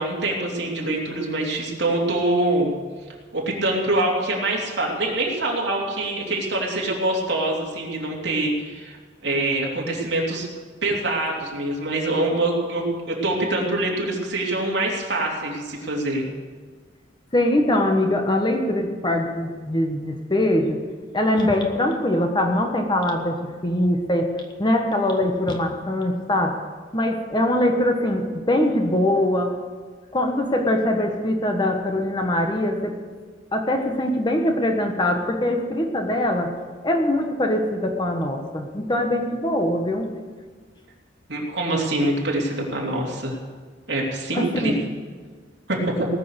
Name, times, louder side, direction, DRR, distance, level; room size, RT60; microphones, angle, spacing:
voice 1, 0.0-2.7 3.3-9.0 9.2-10.5 10.8-16.3 41.3-43.4 43.9-44.7 45.7-45.8, right 2 dB, 65° right, -2 dB, 3.2 m, -24 dB
voice 2, 17.3-20.8 21.1-24.3 24.6-26.6 26.9-29.5 30.1-32.9 33.5-36.5 36.8-40.1 44.3-44.8, left 1 dB, 25° left, 3 dB, 1.3 m, -22 dB
19.0 x 6.8 x 8.0 m, 1.5 s
head